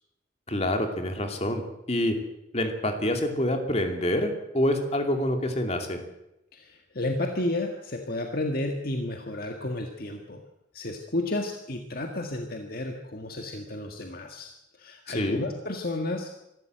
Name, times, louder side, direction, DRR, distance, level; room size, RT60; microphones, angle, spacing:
voice 1, 0.5-1.6 1.9-2.2 2.5-6.0 15.1-15.4, left 1 dB, 35° left, 5 dB, 2.6 m, -26 dB
voice 2, 6.5-10.4 10.7-14.5 14.8-16.3, left 2 dB, 50° left, 4 dB, 1.7 m, -32 dB
25.0 x 13.5 x 7.8 m, 0.89 s
head